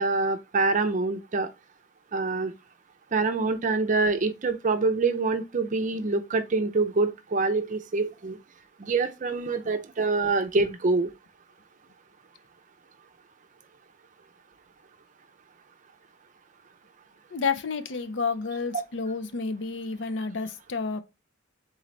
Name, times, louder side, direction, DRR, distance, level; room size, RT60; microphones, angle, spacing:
voice 1, 0.0-1.5 2.1-2.5 3.1-8.4 8.8-11.1, right 3 dB, 40° right, 0.5 m, -25 dB
voice 2, 17.3-21.0, left 4 dB, 65° left, 0.5 m, -30 dB
3.9 x 3.9 x 3.2 m
head